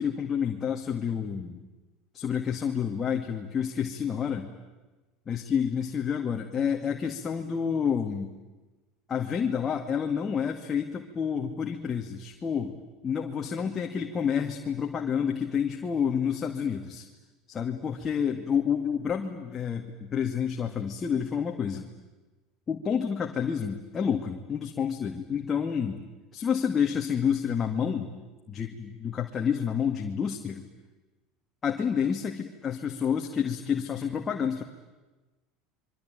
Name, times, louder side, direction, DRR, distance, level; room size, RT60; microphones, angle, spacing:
voice 1, 0.0-1.6 2.1-4.5 5.3-8.3 9.1-12.8 13.0-17.1 17.5-21.9 22.7-26.0 26.3-28.1 28.5-30.7 31.6-34.6, left 7 dB, 30° left, 3 dB, 2.1 m, -29 dB
27.0 x 23.5 x 9.3 m, 1.2 s
supercardioid pair, 95°, 0 cm